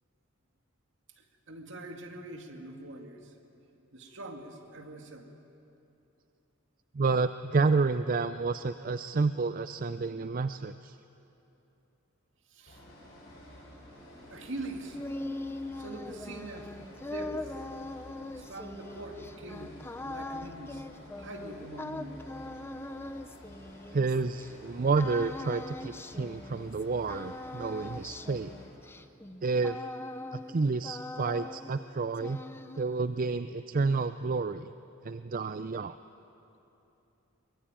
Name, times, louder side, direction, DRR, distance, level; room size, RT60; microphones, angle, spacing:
voice 1, 1.5-3.3 3.9-5.4 12.5-12.8 14.3-15.0 15.8-16.7 17.1-17.5 18.3-19.8 20.1-20.8 21.2-22.3, right 1 dB, 65° right, 4 dB, 2.4 m, -43 dB
voice 2, 6.9-11.0 23.9-28.5 29.4-29.8 30.3-32.4 32.8-34.7 35.0-35.9, right 4 dB, 45° right, 12 dB, 0.5 m, -30 dB
sound 1, 12.7-28.7, left 1 dB, 55° left, 7.6 m, -51 dB
sound 2, 14.6-24.5 25.0-26.8 27.1-30.6 30.8-31.9 32.2-33.1, left 2 dB, 10° left, 0.7 m, -41 dB
23.0 x 21.5 x 9.1 m, 2.9 s
head